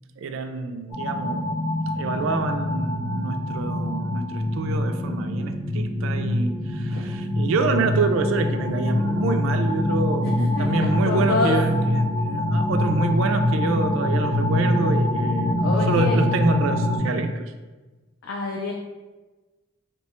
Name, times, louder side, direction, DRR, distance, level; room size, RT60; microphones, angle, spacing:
voice 1, 0.2-1.5 2.0-17.5, right 3 dB, 80° right, 7 dB, 0.3 m, -27 dB
sound 1, 0.9-17.0, left 1 dB, 25° right, 0.8 m, -24 dB
voice 2, 10.2-10.7 11.0-11.6 15.6-16.2 18.2-18.7, left 4 dB, 80° left, 0 dB, 0.4 m, -27 dB
2.8 x 2.2 x 4.2 m, 1.2 s
head